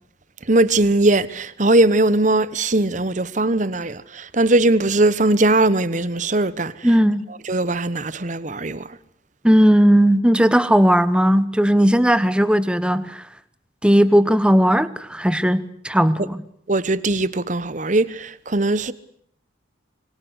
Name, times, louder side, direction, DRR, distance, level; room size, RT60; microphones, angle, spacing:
voice 1, 0.5-6.7 7.5-8.8 16.7-18.9, right 2 dB, 40° right, 1.1 m, -19 dB
voice 2, 6.8-7.2 9.4-13.2 13.8-16.4, equal, 5° right, 1.1 m, -16 dB
26.0 x 23.0 x 8.1 m
head